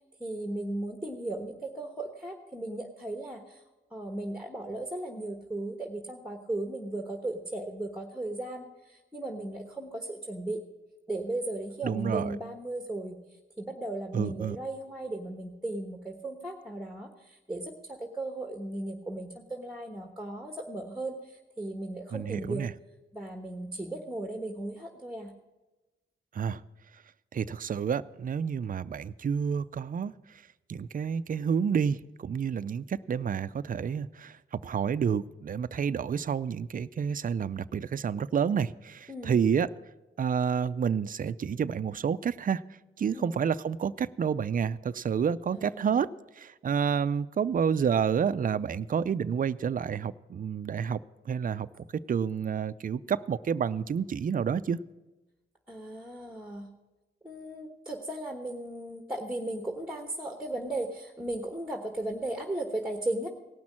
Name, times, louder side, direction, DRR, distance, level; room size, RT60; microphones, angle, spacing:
voice 1, 0.2-3.6 3.9-10.6 11.1-13.2 13.6-22.7 23.1-25.3 39.1-39.4 43.1-43.3 45.5-46.0 55.7-56.7 57.2-63.3, right 2 dB, 5° right, 3 dB, 1.2 m, -36 dB
voice 2, 11.8-12.3 14.1-14.6 22.1-22.7 26.3-26.6 27.3-30.1 30.7-39.7 40.2-42.6 43.0-46.1 46.4-51.0 51.3-51.7 52.1-54.8, right 7 dB, 40° right, 14 dB, 0.4 m, -29 dB
18.0 x 6.1 x 7.3 m, 1.1 s
cardioid pair, 80°, 21 cm